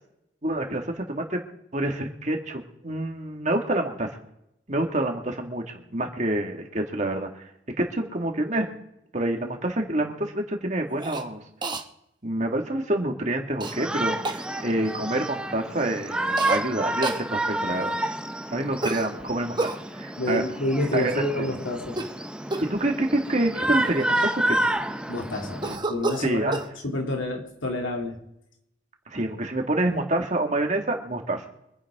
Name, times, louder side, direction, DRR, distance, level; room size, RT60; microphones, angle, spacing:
voice 1, 0.4-1.4 1.7-4.2 4.7-7.4 7.8-8.7 9.1-11.4 12.2-18.0 18.5-20.5 20.9-21.2 22.6-24.7 26.2-26.5 29.1-31.4, right 1 dB, 40° right, 3 dB, 2.0 m, -27 dB
Cough, 11.0-11.2 11.6-11.8 13.6-13.7 14.2-14.4 16.4-16.6 17.0-17.2 18.8-19.8 21.8-22.2 22.5-22.8 23.5-23.6 23.8-24.8 25.6-26.7, right 2 dB, 20° right, 1.0 m, -30 dB
Shout, 13.6-25.8, right 1 dB, 5° right, 0.6 m, -29 dB
voice 2, 20.2-22.0 25.1-28.2, left 1 dB, 85° left, 1 dB, 3.0 m, -29 dB
25.0 x 10.0 x 3.7 m, 0.80 s
head